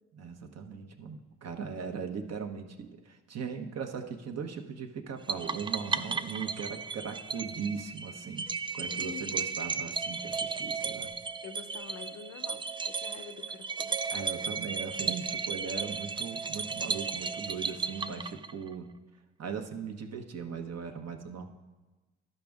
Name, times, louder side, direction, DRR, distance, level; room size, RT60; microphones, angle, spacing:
voice 1, 0.1-8.5 8.7-11.1 14.1-18.9 19.4-21.5, right 6 dB, 50° right, 4 dB, 1.1 m, -39 dB
sound 1, 5.3-18.7, right 5 dB, 15° right, 0.3 m, -35 dB
voice 2, 8.9-9.5 11.4-14.0 17.8-18.3, left 7 dB, 65° left, 9 dB, 0.8 m, -47 dB
12.0 x 5.3 x 3.5 m, 1.2 s
hypercardioid pair, 50°, 32 cm